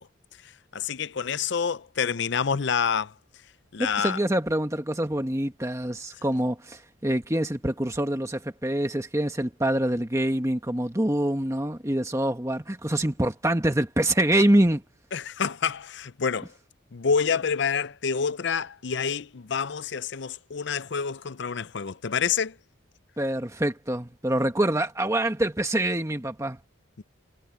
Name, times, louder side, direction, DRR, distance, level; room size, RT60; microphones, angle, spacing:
voice 1, 0.7-3.1 3.7-4.2 15.1-16.5 16.9-22.6 27.0-27.1, left 6 dB, 55° left, 0.6 m, -27 dB
voice 2, 3.8-14.8 23.2-26.6, right 1 dB, 15° right, 1.4 m, -25 dB
head